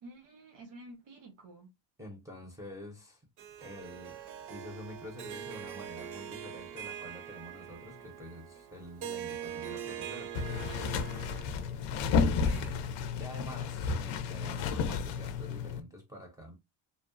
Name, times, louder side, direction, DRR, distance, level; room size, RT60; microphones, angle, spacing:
voice 1, 0.0-1.7 12.2-12.8, right 2 dB, 90° right, 0.9 m, -50 dB
voice 2, 2.0-3.3 3.6-4.2 4.5-10.6 13.2-16.5, left 1 dB, 10° right, 0.5 m, -47 dB
Harp, 3.4-11.8, right 9 dB, 65° right, 0.6 m, -43 dB
sound 1, 10.3-15.8, left 5 dB, 75° left, 0.5 m, -32 dB
2.7 x 2.1 x 2.4 m
cardioid pair, 150°, 44 cm